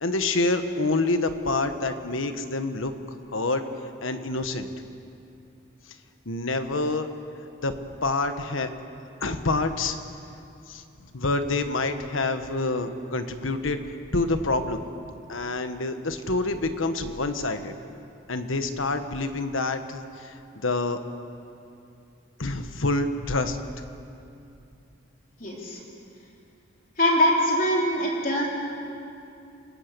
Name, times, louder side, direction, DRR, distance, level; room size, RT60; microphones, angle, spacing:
voice 1, 0.0-2.9 3.3-3.6 4.0-4.7 6.2-7.1 7.6-8.7 9.2-10.0 10.7-10.8 11.1-13.8 14.1-14.8 15.3-17.7 18.3-21.0 22.4-23.6, left 2 dB, 90° left, 8 dB, 1.4 m, -27 dB
voice 2, 25.4-25.8 27.0-28.5, equal, 45° left, -2 dB, 4.1 m, -23 dB
28.5 x 16.5 x 6.9 m, 2.6 s
head